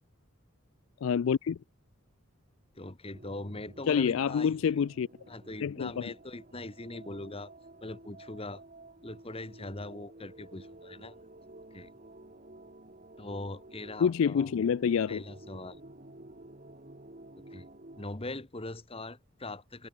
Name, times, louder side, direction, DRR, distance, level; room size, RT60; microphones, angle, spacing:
voice 1, 1.0-1.6 3.9-5.1 5.6-6.1 14.0-15.2, left 7 dB, 60° left, 0.3 m, -27 dB
voice 2, 2.7-4.5 5.3-7.5 7.8-8.6 9.0-11.1 11.7-11.9 13.2-14.5 15.1-15.8 17.5-17.7 17.9-19.9, left 2 dB, 25° left, 1.6 m, -41 dB
sound 1, 3.1-18.1, right 2 dB, 35° right, 2.2 m, -52 dB
head